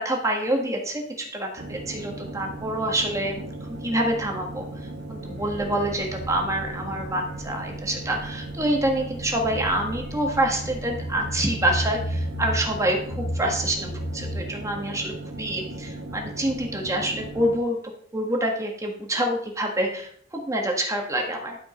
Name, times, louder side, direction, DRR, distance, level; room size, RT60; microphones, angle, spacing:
voice 1, 0.0-4.6 5.1-17.8 18.1-21.6, right 1 dB, 15° right, 1 dB, 1.5 m, -27 dB
sound 1, 1.6-17.6, right 2 dB, 60° right, 1.2 m, -37 dB
sound 2, 5.3-14.4, equal, 50° left, 0.8 m, -35 dB
12.0 x 5.1 x 5.1 m, 0.62 s
head